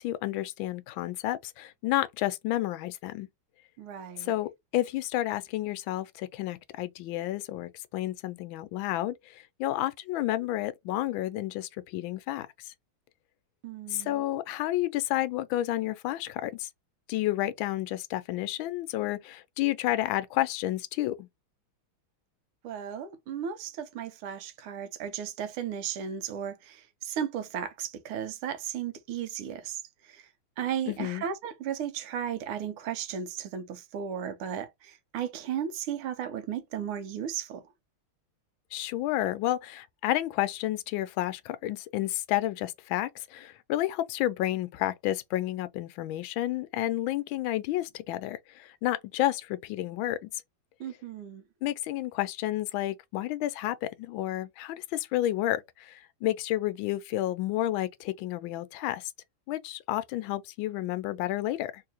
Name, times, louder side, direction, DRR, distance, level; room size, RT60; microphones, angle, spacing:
voice 1, 0.0-3.3 4.2-12.7 13.9-16.7 17.1-21.3 30.9-31.2 38.7-50.4 51.6-59.1 59.5-61.8, left 14 dB, 75° left, 1.3 m, -31 dB
voice 2, 3.8-4.3 13.6-14.2 22.6-30.3 30.6-37.7 50.8-51.4, right 9 dB, 90° right, 1.6 m, -35 dB
3.7 x 2.8 x 2.7 m
omnidirectional pair, 2.3 m